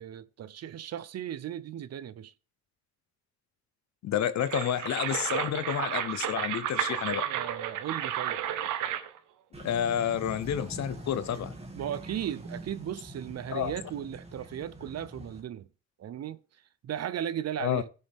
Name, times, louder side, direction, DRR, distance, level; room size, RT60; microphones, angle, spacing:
voice 1, 0.0-2.3 7.3-8.4 11.7-15.7 16.0-16.4 16.8-17.9, right 10 dB, 55° right, 0.7 m, -36 dB
voice 2, 4.0-7.3 9.6-11.6 13.5-13.7 17.6-17.8, left 9 dB, 65° left, 0.9 m, -30 dB
sound 1, 4.2-9.2, right 10 dB, 85° right, 1.1 m, -32 dB
sound 2, 9.5-15.4, right 1 dB, 20° right, 2.2 m, -44 dB
15.5 x 6.5 x 3.6 m
cardioid pair, 90°, 30 cm